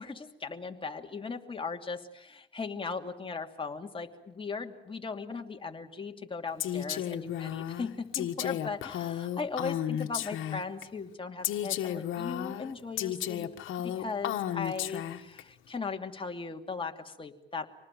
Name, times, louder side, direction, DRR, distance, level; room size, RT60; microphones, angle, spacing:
voice 1, 0.0-13.5 13.8-17.6, left 4 dB, 25° left, 3 dB, 2.6 m, -38 dB
Female speech woman speaking, 6.6-10.8 11.4-15.4, left 11 dB, 85° left, 1.5 m, -33 dB
26.0 x 19.5 x 9.0 m, 0.83 s
cardioid pair, 90°, 20 cm